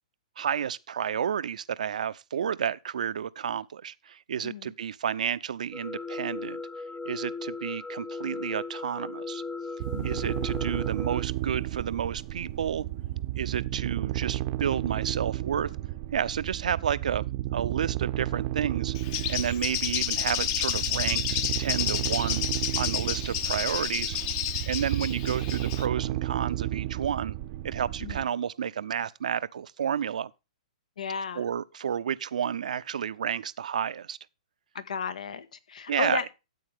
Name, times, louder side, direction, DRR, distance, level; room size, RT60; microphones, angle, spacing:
voice 1, 0.4-6.6 7.1-9.4 10.0-12.9 13.3-15.7 16.1-17.3 17.5-18.9 19.3-22.4 22.8-24.2 24.7-27.4 27.6-30.3 31.4-34.2 35.9-36.3, right 8 dB, 75° right, 0.6 m, -31 dB
voice 2, 4.4-4.7 9.9-10.2 28.0-28.3 31.0-31.5 34.7-36.3, left 5 dB, 80° left, 1.6 m, -34 dB
sound 1, 5.7-11.2, left 4 dB, 10° left, 0.5 m, -37 dB
sound 2, 9.8-28.2, right 15 dB, 40° right, 0.7 m, -32 dB
Bird, 18.9-25.9, left 11 dB, 40° left, 1.1 m, -30 dB
13.0 x 8.6 x 3.5 m
hypercardioid pair, 135°, 4 cm